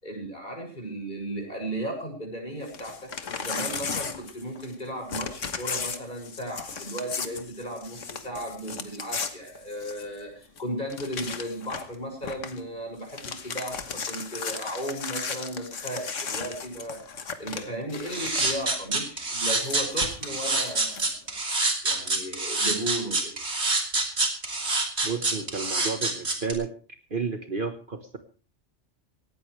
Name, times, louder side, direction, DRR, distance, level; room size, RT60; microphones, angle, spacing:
voice 1, 0.0-17.0 17.4-21.1 21.8-23.3, right 1 dB, 40° left, 1 dB, 6.8 m, -35 dB
Crumpling crinkling / Tearing, 2.6-4.8 5.1-10.2 10.6-10.7 10.9-11.9 12.2-12.6 13.0-18.7 19.5-21.1, left 5 dB, 80° left, 1.8 m, -36 dB
sound 1, 18.1-26.5, right 2 dB, 60° right, 3.2 m, -26 dB
voice 2, 25.0-26.7 27.1-28.2, right 5 dB, 45° right, 7 dB, 1.6 m, -31 dB
18.0 x 17.5 x 3.3 m, 0.36 s
omnidirectional pair, 1.3 m